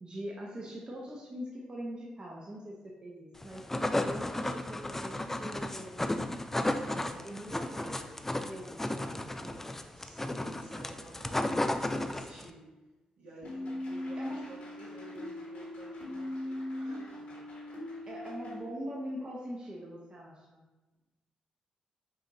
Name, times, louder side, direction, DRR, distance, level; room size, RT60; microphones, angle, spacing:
voice 1, 0.0-3.7 4.0-6.0 6.5-8.1 8.4-9.8 14.2-14.3 18.1-20.6, equal, 35° right, -3 dB, 0.7 m, -43 dB
sound 1, 3.4-12.5, left 1 dB, 15° left, 0.3 m, -33 dB
voice 2, 8.9-9.4 9.9-12.7 13.2-17.4, right 1 dB, 75° right, -5 dB, 1.3 m, -51 dB
sound 2, 13.4-18.6, left 1 dB, 70° left, 1.5 m, -40 dB
4.9 x 2.6 x 3.0 m, 1.1 s
supercardioid pair, 55°, 2 cm